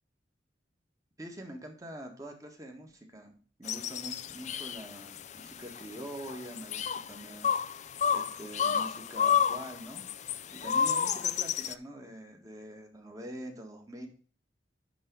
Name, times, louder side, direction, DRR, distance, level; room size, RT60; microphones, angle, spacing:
voice 1, 1.2-3.3 3.6-10.1 10.5-14.1, right 1 dB, 20° right, 3 dB, 1.7 m, -45 dB
sound 1, 3.7-11.7, left 7 dB, 40° left, 0.4 m, -31 dB
11.0 x 3.8 x 5.3 m, 0.42 s
head